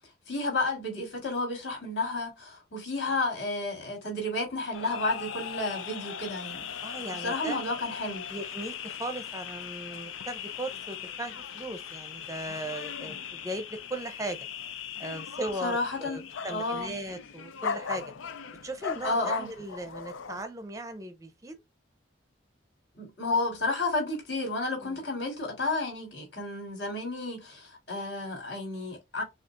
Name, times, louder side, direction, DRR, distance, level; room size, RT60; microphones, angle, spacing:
voice 1, 0.3-6.7 7.1-8.2 15.6-16.2 16.5-16.9 19.0-19.5 23.0-29.2, left 2 dB, 60° left, 3.0 m, -31 dB
sound 1, 4.7-20.4, left 7 dB, 85° left, 0.5 m, -39 dB
voice 2, 6.8-7.6 8.3-14.5 15.0-18.1 18.6-21.6 24.8-25.0, right 1 dB, 15° right, 0.6 m, -38 dB
6.3 x 2.5 x 2.5 m
head